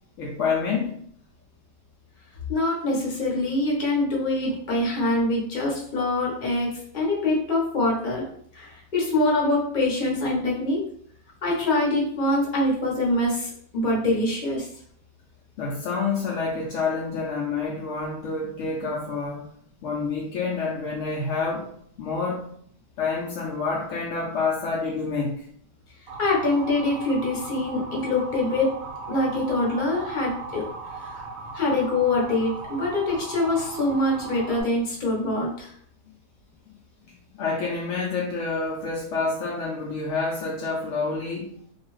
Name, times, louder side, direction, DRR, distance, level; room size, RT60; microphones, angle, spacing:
voice 1, 0.2-1.0 15.6-19.5 19.8-22.5 23.0-25.5 37.4-41.6, left 4 dB, 80° left, -2 dB, 0.6 m, -28 dB
voice 2, 2.5-8.2 8.5-10.8 11.4-14.7 26.2-28.7 29.1-30.6 31.0-31.3 31.5-35.7, left 2 dB, 40° left, -4 dB, 0.8 m, -24 dB
Motor vehicle (road) / Siren, 26.1-34.6, right 3 dB, 70° right, 0.9 m, -38 dB
2.6 x 2.3 x 3.0 m, 0.63 s
omnidirectional pair, 1.8 m